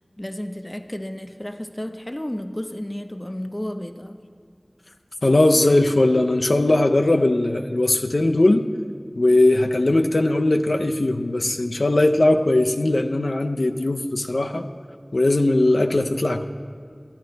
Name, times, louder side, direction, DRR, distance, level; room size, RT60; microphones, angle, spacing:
voice 1, 0.2-4.3, left 1 dB, 25° left, 8 dB, 0.6 m, -32 dB
voice 2, 5.2-8.7 9.2-14.7 15.1-16.5, left 2 dB, 90° left, 5 dB, 0.4 m, -19 dB
12.5 x 9.5 x 3.9 m, 2.1 s
wide cardioid pair, 40°, 0 cm